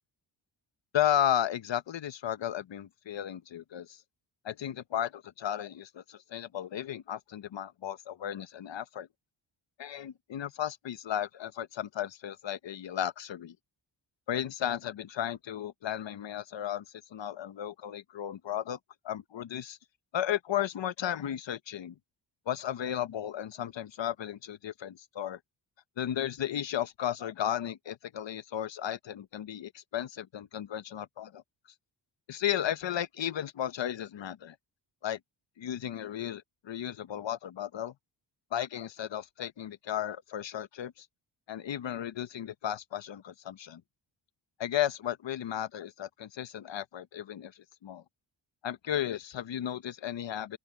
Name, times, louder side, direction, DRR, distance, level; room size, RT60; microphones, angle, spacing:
voice 1, 0.9-4.0 4.4-9.1 9.8-13.6 14.3-16.8 17.1-18.8 19.0-19.8 20.1-22.0 22.5-25.4 26.0-31.4 32.3-34.6 35.0-35.2 35.6-37.9 38.5-41.1 41.5-43.8 44.6-48.0 48.6-50.6, left 10 dB, 65° left, 1.1 m, -34 dB
open air
cardioid pair, 65°, 48 cm